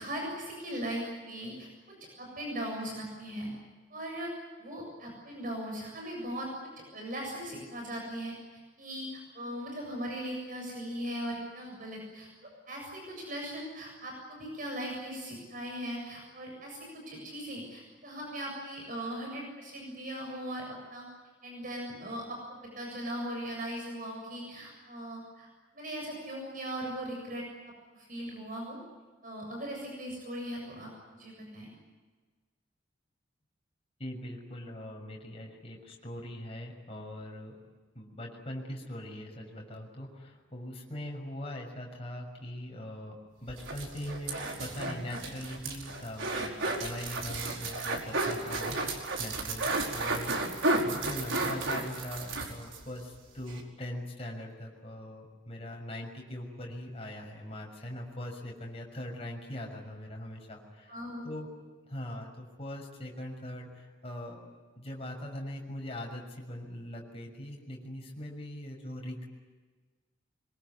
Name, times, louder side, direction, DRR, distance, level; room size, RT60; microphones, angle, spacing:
voice 1, 0.0-3.5 3.9-4.3 4.6-6.5 6.9-8.4 8.8-21.1 21.4-22.4 22.8-25.5 25.7-28.8 29.2-31.8 60.9-61.3, equal, 45° right, 0 dB, 7.5 m, -39 dB
voice 2, 34.0-37.6 37.9-43.2 43.4-50.3 50.8-61.0 61.2-61.5 61.8-64.4 64.8-69.3, left 1 dB, 30° left, 0 dB, 6.4 m, -41 dB
sound 1, 43.5-52.8 53.1-53.2 53.5-53.6, right 2 dB, 75° right, 4.9 m, -33 dB
25.0 x 23.0 x 9.8 m, 1.4 s
head